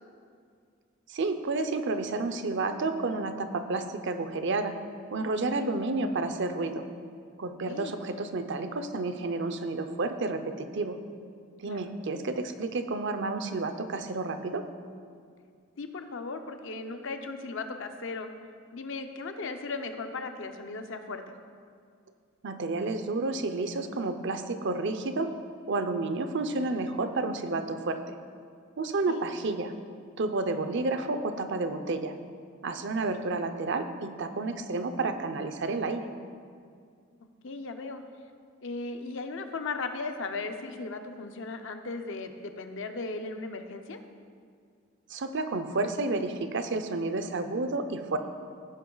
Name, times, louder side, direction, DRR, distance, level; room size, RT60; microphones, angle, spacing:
voice 1, 1.1-4.7 5.1-6.8 7.4-11.0 11.6-14.6 22.4-25.3 25.7-28.2 28.8-29.7 30.2-32.1 32.6-36.1 45.1-48.2, right 3 dB, 55° right, 8 dB, 0.6 m, -30 dB
voice 2, 15.8-18.3 18.7-21.3 29.1-29.3 37.4-38.0 38.6-44.0, left 3 dB, 65° left, 6 dB, 0.7 m, -37 dB
15.5 x 5.2 x 3.9 m, 2.2 s
head